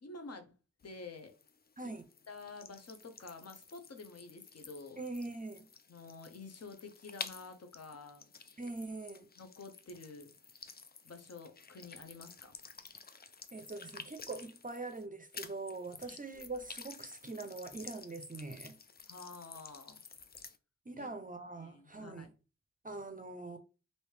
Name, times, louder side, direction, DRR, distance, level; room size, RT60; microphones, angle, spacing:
voice 1, 0.0-0.5 0.8-1.3 1.8-1.9 2.3-5.0 5.9-8.3 9.4-10.3 11.0-12.6 16.0-16.2 19.1-20.0 21.0-21.1 21.6-22.3, left 3 dB, 55° left, 0.8 m, -49 dB
sound 1, 0.8-15.1 15.3-20.6, left 5 dB, 35° left, 0.4 m, -52 dB
voice 2, 1.8-2.1 5.0-5.7 8.6-9.3 13.5-18.8 20.9-22.3 22.8-23.6, right 3 dB, 30° right, 0.5 m, -43 dB
3.1 x 2.7 x 3.2 m
cardioid pair, 45°, 30 cm